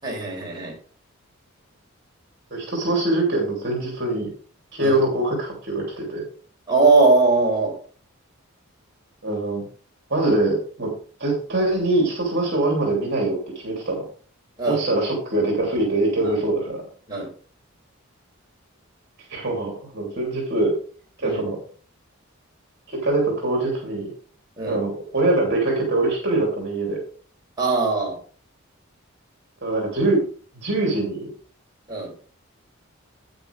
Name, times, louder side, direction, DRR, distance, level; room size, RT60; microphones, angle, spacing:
voice 1, 0.0-0.7 4.8-5.0 6.7-7.7 14.6-14.8 16.2-16.4 17.1-17.3 21.2-21.4 24.6-24.8 27.6-28.2 31.9-32.1, right 3 dB, 20° right, -3 dB, 4.2 m, -20 dB
voice 2, 2.5-4.3 4.7-6.2 9.2-9.6 10.1-10.9 11.2-13.4 13.6-14.0 14.6-16.8 19.3-20.7 21.2-21.6 23.0-24.1 24.7-27.0 29.6-30.2 30.6-31.3, right 2 dB, 55° right, -1 dB, 3.1 m, -23 dB
9.4 x 8.8 x 3.5 m, 0.41 s
head